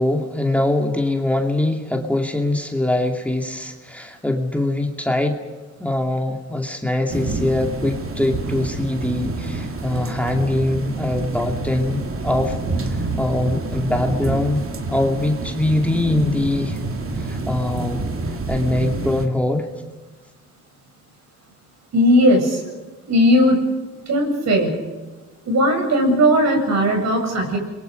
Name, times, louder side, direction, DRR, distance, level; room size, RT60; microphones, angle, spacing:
voice 1, 0.0-5.4 5.8-12.6 12.8-16.8 17.2-18.0 18.5-19.7, left 1 dB, 5° left, 2 dB, 2.5 m, -22 dB
sound 1, 7.1-19.3, right 2 dB, 45° right, 2.7 m, -27 dB
voice 2, 21.9-22.6 23.1-23.6 24.1-24.8 25.4-27.6, equal, 60° right, 3 dB, 7.7 m, -17 dB
29.5 x 22.5 x 5.3 m, 1.3 s
cardioid pair, 90°, 30 cm